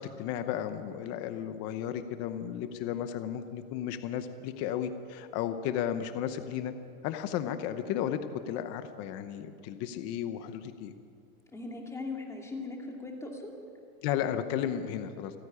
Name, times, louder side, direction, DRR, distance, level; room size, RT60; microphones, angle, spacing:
voice 1, 0.0-6.7 7.0-8.2 8.5-10.9 14.0-15.3, left 10 dB, 35° left, 9 dB, 0.9 m, -34 dB
voice 2, 11.5-13.5, left 3 dB, 5° left, 0 dB, 2.4 m, -39 dB
28.5 x 9.9 x 9.8 m, 2.5 s
supercardioid pair, 160°, 44 cm